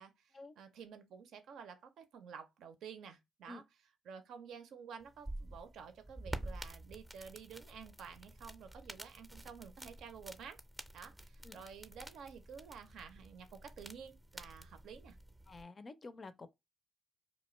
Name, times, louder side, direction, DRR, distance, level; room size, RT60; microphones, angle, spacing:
voice 1, 0.0-3.6 4.0-10.6 10.9-15.2, right 6 dB, 75° right, 0.5 m, -51 dB
sound 1, 5.0-15.6, right 1 dB, 15° right, 0.5 m, -49 dB
voice 2, 15.5-16.5, left 3 dB, 40° left, 0.4 m, -50 dB
2.4 x 2.2 x 3.0 m
supercardioid pair, 50°, 0 cm